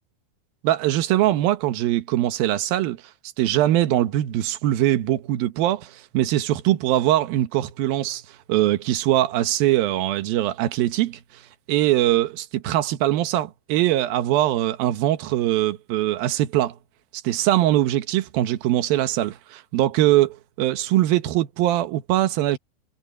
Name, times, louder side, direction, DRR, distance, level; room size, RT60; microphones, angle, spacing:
voice 1, 0.6-3.0 3.4-8.2 8.5-11.2 11.7-16.8 17.2-22.6, right 14 dB, 65° right, 2.6 m, -22 dB
omnidirectional pair, 5.2 m